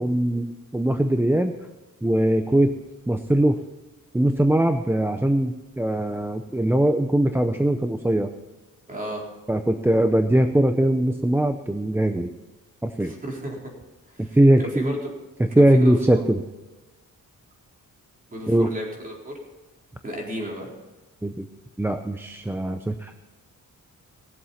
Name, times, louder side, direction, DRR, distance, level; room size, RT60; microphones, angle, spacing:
voice 1, 0.0-1.5 2.0-2.8 3.1-3.6 4.1-8.3 9.5-12.3 12.8-13.1 14.2-14.9 15.4-16.4 18.5-18.7 21.2-21.5 21.8-23.2, right 1 dB, 5° right, 7 dB, 0.5 m, -21 dB
voice 2, 8.9-9.2 13.0-13.7 14.1-14.4 14.6-15.1 15.6-16.2 18.3-19.3 20.0-20.7, right 1 dB, 25° right, -2 dB, 4.2 m, -32 dB
19.0 x 7.8 x 5.7 m, 1.1 s
wide cardioid pair, 155°, 33 cm